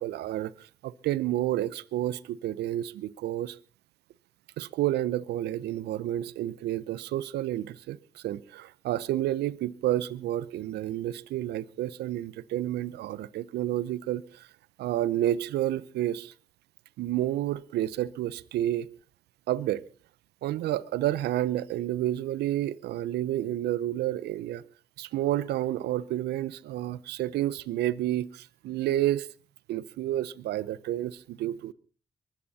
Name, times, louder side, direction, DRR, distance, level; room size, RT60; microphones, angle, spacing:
voice 1, 0.0-3.6 4.6-14.5 14.8-16.3 17.0-18.9 19.5-19.8 20.4-24.6 25.0-29.3 29.7-31.7, right 13 dB, 80° right, 0.7 m, -30 dB
23.0 x 13.0 x 4.2 m
hypercardioid pair, 45°, 17 cm